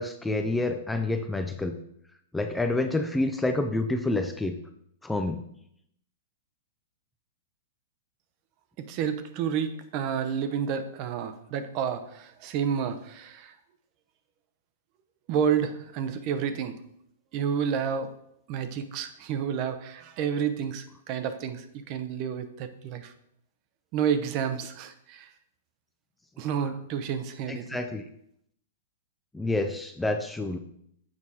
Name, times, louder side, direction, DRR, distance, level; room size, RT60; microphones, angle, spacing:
voice 1, 0.0-1.7 2.3-4.6 5.0-5.4 27.5-28.0 29.3-30.6, left 2 dB, 5° left, 6 dB, 0.4 m, -28 dB
voice 2, 8.8-13.5 15.3-16.7 17.3-18.1 18.5-23.1 23.9-25.3 26.4-27.8, right 7 dB, 40° right, 10 dB, 0.7 m, -30 dB
7.5 x 4.7 x 4.2 m, 0.72 s
hypercardioid pair, 145°, 0 cm